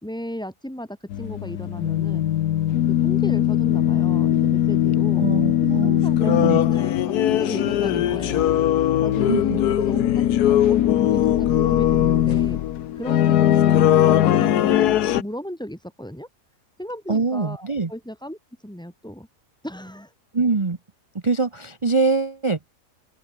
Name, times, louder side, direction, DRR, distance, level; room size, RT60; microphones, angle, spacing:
voice 1, 0.0-2.2 2.8-5.3 5.6-8.6 9.0-10.8 11.1-12.6 13.0-16.3 16.8-19.3 19.6-20.1, equal, 5° left, 2.2 m, -35 dB
sound 1, 1.1-15.2, left 11 dB, 85° left, 1.4 m, -20 dB
voice 2, 5.2-6.6 9.3-9.6 17.1-17.9 20.3-20.8 21.2-22.7, right 3 dB, 25° right, 0.9 m, -23 dB
open air
omnidirectional pair, 1.6 m